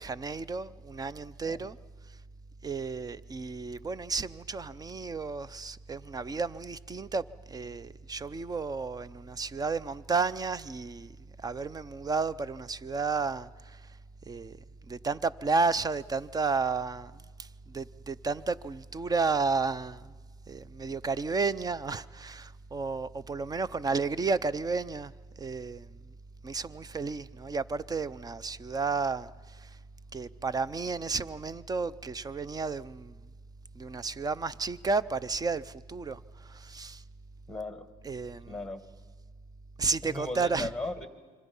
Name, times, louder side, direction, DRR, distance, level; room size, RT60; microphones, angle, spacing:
voice 1, 0.0-1.8 2.6-11.1 11.4-13.8 14.3-14.6 14.9-20.1 20.5-25.1 25.4-25.9 26.4-29.7 30.1-33.1 33.7-37.0 38.0-38.5 39.8-40.7, right 4 dB, 20° right, 0.6 m, -32 dB
voice 2, 37.5-37.9 38.5-38.8 40.0-41.1, left 2 dB, 5° left, 2.1 m, -37 dB
27.0 x 25.0 x 5.5 m
cardioid pair, 110°, 17 cm